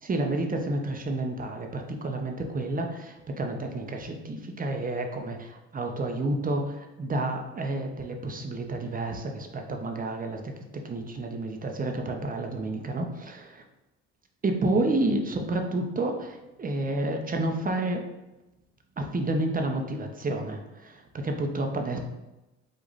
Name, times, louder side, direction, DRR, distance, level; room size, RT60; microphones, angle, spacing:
voice 1, 0.1-10.5 10.8-13.6 14.4-18.0 19.0-22.0, right 2 dB, 25° right, 3 dB, 0.8 m, -30 dB
4.8 x 2.5 x 4.0 m, 0.99 s
hypercardioid pair, 65°, 33 cm